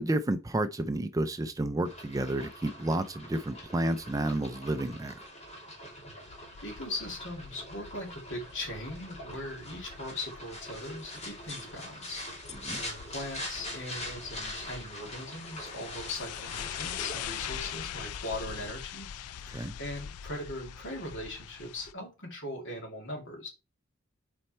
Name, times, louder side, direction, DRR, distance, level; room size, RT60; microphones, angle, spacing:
voice 1, 0.0-5.3 12.6-12.8 19.5-19.8, right 1 dB, 15° right, 0.4 m, -31 dB
sound 1, 1.9-18.7, left 1 dB, 30° left, 2.6 m, -44 dB
sound 2, 6.3-21.9, left 9 dB, 90° left, 0.4 m, -43 dB
voice 2, 6.6-12.3 12.6-19.1 19.4-23.5, left 1 dB, 55° left, 2.6 m, -40 dB
7.7 x 4.3 x 4.3 m
head